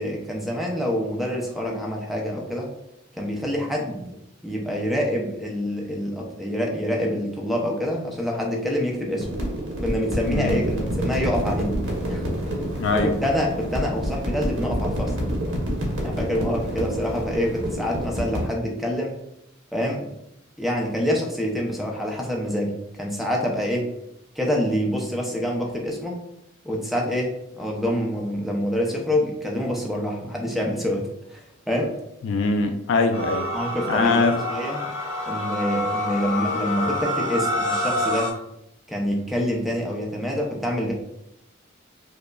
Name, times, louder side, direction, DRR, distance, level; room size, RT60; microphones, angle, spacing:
voice 1, 0.0-2.7 3.1-4.2 4.4-9.3 9.8-11.8 12.1-12.3 12.9-15.1 16.0-19.1 19.7-20.1 20.6-23.9 24.4-26.2 26.6-32.0 33.5-34.9 35.3-38.3 38.9-40.9, equal, ahead, -1 dB, 0.5 m, -26 dB
sound 1, 9.2-18.5, equal, 70° right, 1.0 m, -28 dB
voice 2, 10.3-10.6 12.8-13.1 32.2-33.5 33.9-34.4, left 3 dB, 60° left, 6 dB, 0.3 m, -22 dB
sound 2, 33.1-38.3, left 1 dB, 80° left, 1.1 m, -27 dB
4.9 x 2.1 x 2.3 m, 0.81 s
head